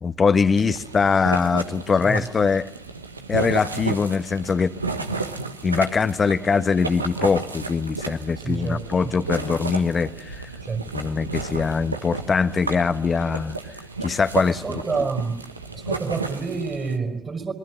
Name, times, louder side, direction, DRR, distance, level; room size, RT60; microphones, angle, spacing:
voice 1, 0.0-2.7 3.3-4.7 5.6-10.5 10.9-13.6 14.0-15.1, left 5 dB, 40° left, 10 dB, 1.4 m, -22 dB
sound 1, 0.5-17.0, right 3 dB, 85° right, 1.3 m, -32 dB
voice 2, 8.4-9.1 10.6-10.9 14.5-15.5 15.7-17.5, right 4 dB, 40° right, 9 dB, 5.5 m, -28 dB
26.5 x 23.0 x 7.7 m, 0.70 s
figure-of-eight pair, 45°, 0 cm